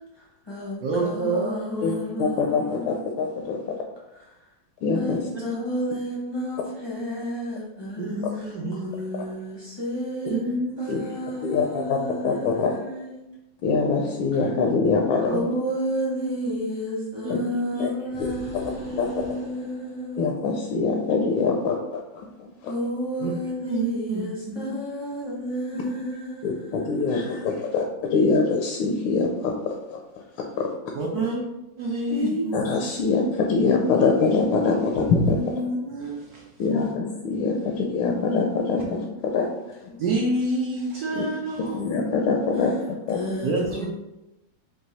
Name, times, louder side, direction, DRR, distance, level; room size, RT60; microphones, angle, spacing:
voice 1, 0.2-3.0 4.8-8.5 8.8-10.4 10.8-13.2 14.3-14.5 15.3-20.5 22.6-27.5 31.2-31.4 32.1-32.6 39.9-40.0 43.1-43.9, equal, 35° left, -7 dB, 0.4 m, -32 dB
voice 2, 0.8-2.3 8.0-8.9 10.3-10.9 15.3-15.4 17.2-17.9 23.2-23.3 23.6-24.7 25.7-26.0 30.9-31.4 31.8-32.5 35.2-36.5 40.0-41.8 43.4-43.9, right 2 dB, 70° right, -2 dB, 0.9 m, -28 dB
voice 3, 1.8-3.8 4.8-5.2 10.9-11.0 11.4-12.0 12.2-12.8 13.6-15.3 17.3-17.4 17.8-17.9 18.2-18.3 19.0-19.1 20.2-22.7 26.4-30.0 30.6-30.7 32.5-35.4 36.6-39.5 41.1-41.2 41.7-43.2, left 4 dB, 80° left, 1 dB, 1.3 m, -24 dB
sound 1, 18.1-20.6, equal, 40° right, 0.4 m, -43 dB
4.6 x 2.3 x 4.0 m, 0.94 s
omnidirectional pair, 2.2 m